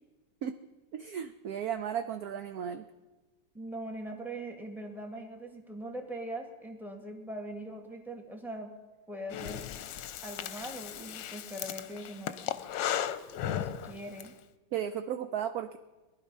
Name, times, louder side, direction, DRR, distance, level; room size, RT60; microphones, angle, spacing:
voice 1, 0.9-2.9 14.7-15.8, right 9 dB, 70° right, 9 dB, 0.9 m, -35 dB
voice 2, 3.5-8.7 9.1-9.6 10.2-12.6 13.4-14.3, right 1 dB, ahead, 2 dB, 1.5 m, -41 dB
Breathing, 9.3-14.3, left 10 dB, 75° left, 1.3 m, -36 dB
19.0 x 11.5 x 5.4 m, 1.2 s
omnidirectional pair, 2.2 m